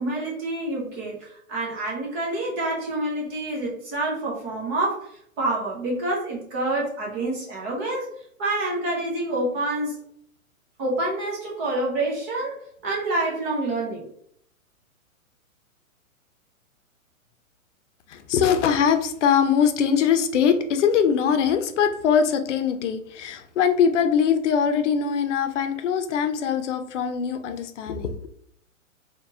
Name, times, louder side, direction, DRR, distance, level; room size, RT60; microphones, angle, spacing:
voice 1, 0.0-5.1 5.4-8.1 8.4-10.0 10.8-12.6 12.8-14.1, right 2 dB, 10° right, -3 dB, 0.3 m, -27 dB
voice 2, 18.1-28.3, left 7 dB, 60° left, 8 dB, 0.7 m, -22 dB
4.2 x 2.9 x 2.7 m, 0.67 s
hypercardioid pair, 130°, 41 cm